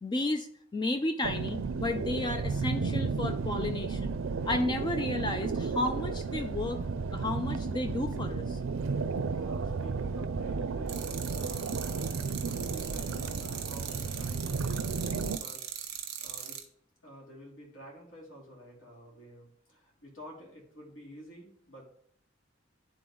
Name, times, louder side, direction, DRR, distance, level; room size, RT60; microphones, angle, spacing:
voice 1, 0.0-4.2 4.5-6.8 7.1-8.6, left 2 dB, 20° left, 7 dB, 0.3 m, -32 dB
sound 1, 1.2-15.4, right 4 dB, 90° right, 0.4 m, -33 dB
voice 2, 9.2-15.7 16.2-16.6 17.0-21.9, equal, 80° left, -2 dB, 2.8 m, -50 dB
sound 2, 10.9-16.6, right 9 dB, 55° right, 1.2 m, -40 dB
11.0 x 3.9 x 3.8 m, 0.68 s
head